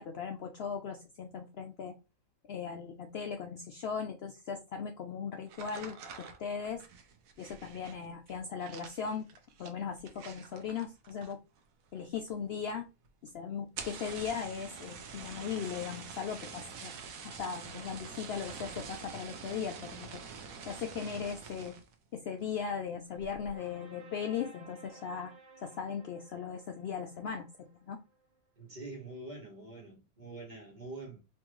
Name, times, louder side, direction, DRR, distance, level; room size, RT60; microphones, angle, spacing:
voice 1, 0.0-1.9 2.5-6.0 6.4-6.8 7.4-9.3 9.6-11.4 11.9-12.8 13.2-17.0 17.2-20.2 20.6-21.7 22.1-25.3 25.6-28.0, left 6 dB, 65° left, 0.6 m, -38 dB
sound 1, 5.5-11.6 11.9-12.4 12.7-12.8 13.0-13.1 13.6-21.9 22.4-22.8 23.2-23.5, right 6 dB, 90° right, 1.1 m, -46 dB
sound 2, 22.4-28.3, right 2 dB, 55° right, 1.1 m, -57 dB
voice 2, 28.6-31.2, right 2 dB, 35° right, 1.2 m, -45 dB
4.4 x 2.6 x 3.0 m
omnidirectional pair, 1.4 m